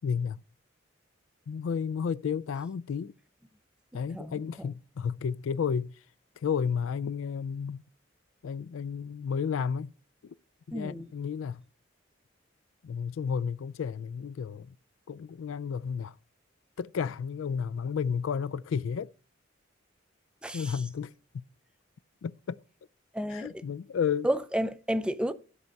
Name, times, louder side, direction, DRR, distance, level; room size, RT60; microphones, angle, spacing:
voice 1, 0.0-0.4 1.5-3.1 3.9-5.9 6.4-7.8 8.4-9.9 10.2-10.3 10.7-11.6 12.8-14.7 15.1-16.1 16.8-19.1 20.5-21.4 22.2-22.6 23.3-24.3, left 6 dB, 85° left, 0.4 m, -32 dB
voice 2, 4.1-4.7 10.7-11.1 20.4-20.8 23.1-23.6 24.2-25.3, equal, 5° right, 0.4 m, -31 dB
13.0 x 4.5 x 5.3 m
head